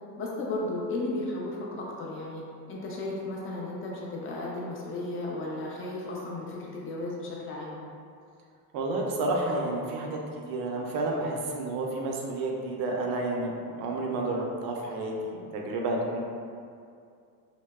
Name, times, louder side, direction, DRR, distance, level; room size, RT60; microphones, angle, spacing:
voice 1, 0.2-2.4 2.7-7.8, left 2 dB, 30° left, -3 dB, 0.4 m, -34 dB
voice 2, 8.7-10.2 10.5-16.2, right 2 dB, 50° right, 0 dB, 0.5 m, -30 dB
2.7 x 2.0 x 2.2 m, 2.3 s
supercardioid pair, 100°, 49 cm